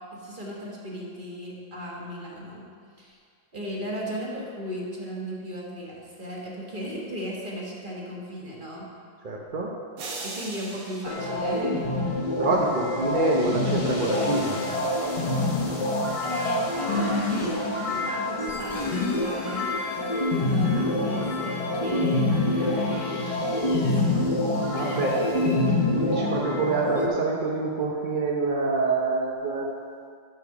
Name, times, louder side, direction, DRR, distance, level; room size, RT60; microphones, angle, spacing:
voice 1, 0.1-2.7 3.0-3.2 3.5-8.9 10.2-11.8 16.2-17.5 18.0-19.7 20.4-24.3, equal, 25° right, -3 dB, 1.6 m, -36 dB
voice 2, 9.2-9.7 12.4-14.6 24.7-29.7, right 3 dB, 50° right, -2 dB, 0.5 m, -26 dB
sound 1, 10.0-12.3, right 3 dB, 85° right, 1.9 m, -40 dB
sound 2, 11.1-27.1, left 2 dB, 35° left, 0.5 m, -26 dB
Drill, 18.6-25.8, left 2 dB, 65° left, 1.7 m, -45 dB
7.6 x 6.9 x 6.0 m, 2.1 s
omnidirectional pair, 2.1 m